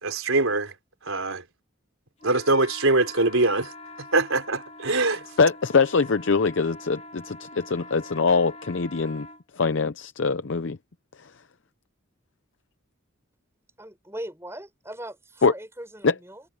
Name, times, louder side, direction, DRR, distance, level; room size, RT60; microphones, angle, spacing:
voice 1, 0.0-0.7 1.0-1.4 2.2-3.7 4.1-5.2, right 2 dB, 75° right, 3.8 m, -23 dB
sound 1, 2.2-9.4, left 2 dB, 30° left, 3.6 m, -44 dB
voice 2, 5.4-9.3 9.6-10.8 15.4-15.5 16.0-16.1, left 4 dB, 60° left, 0.6 m, -23 dB
voice 3, 13.8-16.4, right 1 dB, 10° right, 6.3 m, -39 dB
head